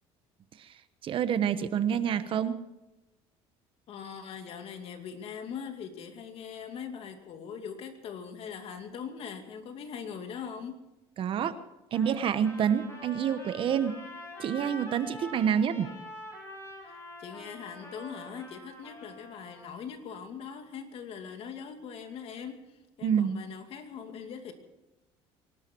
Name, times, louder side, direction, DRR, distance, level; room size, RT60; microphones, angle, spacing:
voice 1, 1.0-2.5 11.2-11.5 11.9-13.9 14.4-15.9 23.0-23.4, right 8 dB, 50° right, 12 dB, 1.1 m, -27 dB
voice 2, 3.9-10.8 15.3-15.4 16.8-24.5, left 7 dB, 55° left, 6 dB, 2.5 m, -41 dB
Trumpet, 11.9-19.7, left 1 dB, 20° left, 6.8 m, -46 dB
23.5 x 12.5 x 4.6 m, 1.0 s
cardioid pair, 115°, 12 cm